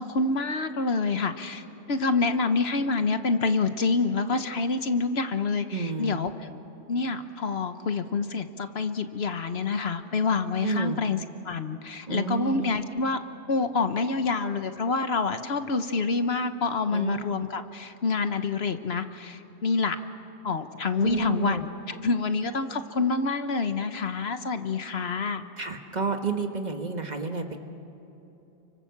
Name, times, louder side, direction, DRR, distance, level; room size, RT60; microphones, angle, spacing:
voice 1, 0.0-6.3 6.9-11.2 11.4-13.2 13.5-20.0 20.4-25.4, left 4 dB, 60° left, 9 dB, 1.2 m, -27 dB
voice 2, 5.7-6.2 10.6-11.0 12.1-12.7 16.9-17.3 21.0-21.6 25.6-27.6, right 4 dB, 35° right, 5 dB, 1.6 m, -30 dB
30.0 x 24.5 x 7.2 m, 3.0 s
omnidirectional pair, 1.2 m